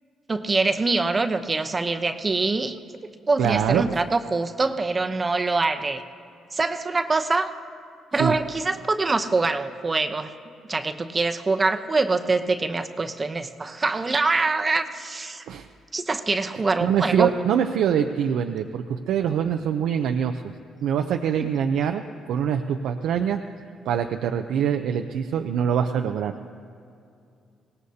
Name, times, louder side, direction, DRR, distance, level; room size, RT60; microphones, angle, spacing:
voice 1, 0.3-2.8 3.3-6.0 6.5-7.5 8.1-10.3 10.7-15.4 15.9-17.3, right 3 dB, 30° right, 7 dB, 0.8 m, -24 dB
voice 2, 3.4-3.9 8.2-8.3 15.5-15.7 16.8-20.4 20.8-23.4 23.9-26.3, right 8 dB, 80° right, 5 dB, 0.5 m, -24 dB
23.5 x 18.0 x 2.8 m, 2.5 s
cardioid pair, 90°, 0 cm